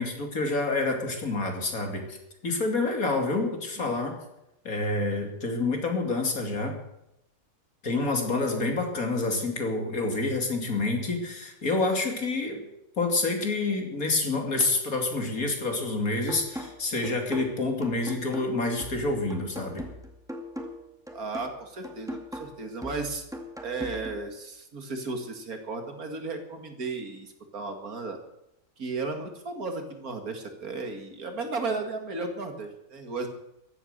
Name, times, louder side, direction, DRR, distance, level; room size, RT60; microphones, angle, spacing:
voice 1, 0.0-2.2 2.4-4.1 4.6-6.8 7.8-12.6 13.0-19.9, left 3 dB, 75° left, 3 dB, 3.2 m, -28 dB
sound 1, 16.3-24.3, equal, ahead, 2.0 m, -40 dB
voice 2, 21.1-23.2 23.6-28.2 28.8-33.3, right 3 dB, 90° right, 5 dB, 2.6 m, -34 dB
15.0 x 11.5 x 6.7 m, 0.86 s
omnidirectional pair, 1.5 m